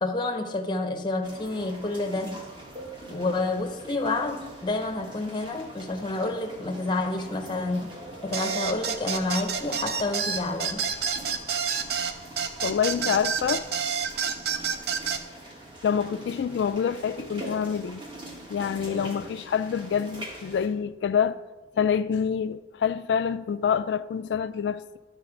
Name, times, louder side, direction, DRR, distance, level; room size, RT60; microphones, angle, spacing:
voice 1, 0.0-2.5 3.1-8.0 8.2-10.9 18.9-19.3, left 2 dB, 25° left, 0.7 m, -29 dB
sound 1, 1.2-20.7, right 1 dB, 30° right, 1.4 m, -43 dB
sound 2, 8.3-15.2, right 6 dB, 60° right, 0.5 m, -29 dB
voice 2, 12.6-13.6 15.8-18.0 18.5-21.4 21.8-25.0, left 7 dB, 75° left, 0.3 m, -26 dB
11.5 x 4.0 x 5.9 m
head